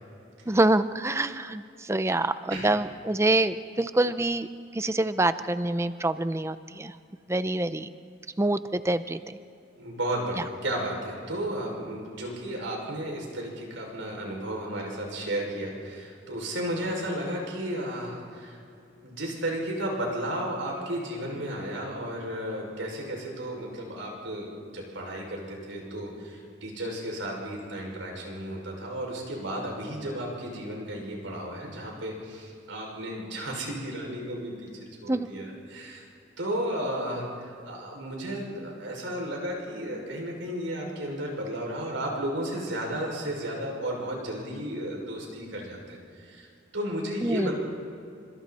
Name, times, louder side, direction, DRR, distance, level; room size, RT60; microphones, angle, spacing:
voice 1, 0.5-4.5 4.7-6.9 7.3-7.9 8.4-9.4 35.1-35.3 47.2-47.5, right 2 dB, 15° right, 12 dB, 0.6 m, -26 dB
voice 2, 9.8-18.6 19.0-34.7 35.0-36.0 36.4-46.5 46.7-47.5, right 1 dB, 90° right, 0 dB, 6.2 m, -33 dB
28.0 x 26.5 x 4.3 m, 2.5 s
head